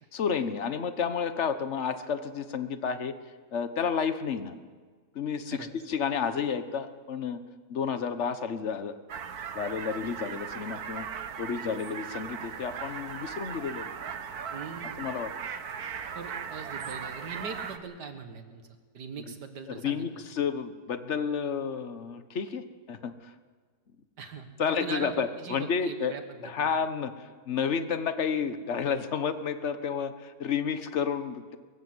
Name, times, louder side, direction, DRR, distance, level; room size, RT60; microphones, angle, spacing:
voice 1, 0.1-3.2 3.5-4.6 5.1-7.4 7.7-8.9 9.5-11.1 11.4-13.9 15.0-15.3 19.7-23.3 24.6-26.1 26.4-31.6, left 6 dB, 50° left, 11 dB, 1.3 m, -31 dB
sound 1, 9.1-17.8, right 7 dB, 65° right, 1.6 m, -38 dB
voice 2, 14.5-15.0 16.1-18.7 18.9-20.0 24.2-26.7, right 5 dB, 85° right, 8 dB, 2.2 m, -41 dB
23.0 x 15.5 x 7.8 m, 1.5 s
omnidirectional pair, 1.7 m